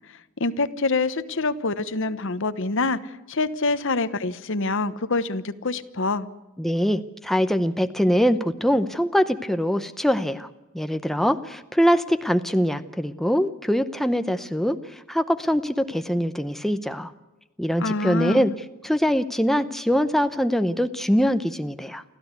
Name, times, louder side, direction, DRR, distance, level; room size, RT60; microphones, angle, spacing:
voice 1, 0.4-6.3 17.8-18.5, left 3 dB, 65° left, 13 dB, 1.1 m, -26 dB
voice 2, 6.6-10.5 10.7-17.1 17.6-18.5 18.8-22.0, equal, ahead, 10 dB, 0.7 m, -23 dB
29.0 x 13.0 x 8.2 m, 1.1 s
head